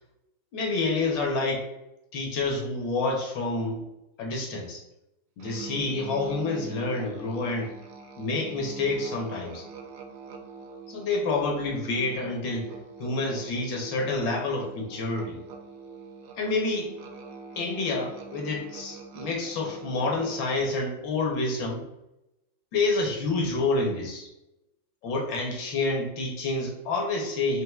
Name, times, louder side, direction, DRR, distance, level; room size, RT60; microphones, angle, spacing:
voice 1, 0.5-1.7 2.1-3.8 4.2-4.8 5.4-7.7 8.2-9.6 10.9-12.7 13.0-15.4 16.4-16.9 17.6-21.8 22.7-24.3 25.0-27.6, left 3 dB, 75° left, -1 dB, 1.5 m, -28 dB
Musical instrument, 5.4-21.0, right 4 dB, 80° right, 0.7 m, -45 dB
4.5 x 3.3 x 2.3 m, 0.91 s
omnidirectional pair, 2.0 m